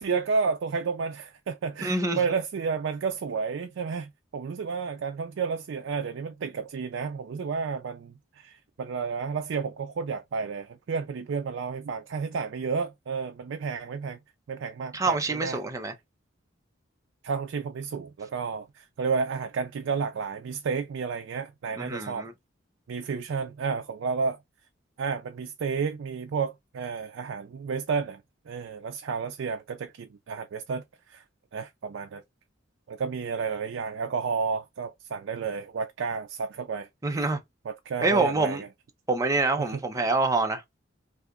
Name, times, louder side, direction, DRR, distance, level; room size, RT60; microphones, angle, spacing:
voice 1, 0.0-14.2 14.5-15.6 17.2-22.3 22.9-24.4 25.0-28.2 28.5-31.2 31.5-32.2 32.9-37.3 37.7-38.7 39.6-39.8, right 5 dB, 70° right, 0.4 m, -31 dB
voice 2, 1.8-2.2 14.9-15.9 21.8-22.3 37.0-37.4 38.0-38.6 39.1-40.6, right 3 dB, 15° right, 0.5 m, -26 dB
2.8 x 2.4 x 3.5 m
head